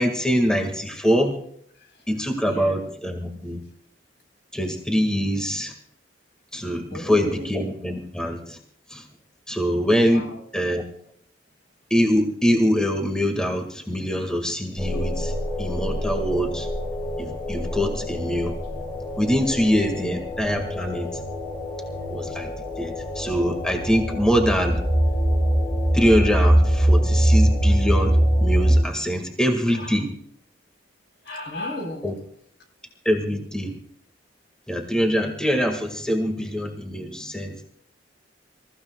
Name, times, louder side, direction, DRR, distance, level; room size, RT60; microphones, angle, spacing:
voice 1, 0.0-1.4 2.1-3.6 4.5-5.7 6.5-8.6 8.9-9.1 9.5-10.3 10.5-10.8 11.9-16.7 17.2-18.5 19.2-21.2 22.1-24.8 25.9-30.1 32.0-32.1 33.1-33.8 34.7-37.6, equal, 5° left, 2 dB, 1.7 m, -24 dB
voice 2, 2.5-2.8 6.9-7.5 10.1-10.4 15.3-15.4 20.0-20.2 21.9-22.0 29.7-30.0 31.2-32.2, left 1 dB, 70° left, 3 dB, 3.9 m, -35 dB
sound 1, 14.8-28.8, equal, 25° left, 6.3 m, -23 dB
27.0 x 15.0 x 2.3 m, 0.66 s
head